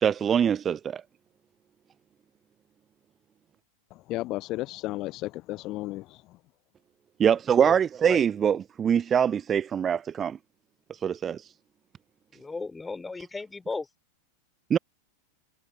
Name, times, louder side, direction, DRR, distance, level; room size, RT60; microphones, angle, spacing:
voice 1, 0.0-1.0 7.2-10.4 10.9-11.5 14.7-14.8, right 8 dB, 25° right, 0.5 m, -24 dB
voice 2, 3.9-6.4, left 18 dB, 40° left, 0.4 m, -34 dB
voice 3, 12.3-13.9, left 3 dB, 10° left, 4.8 m, -35 dB
figure-of-eight pair, 90°, 0 cm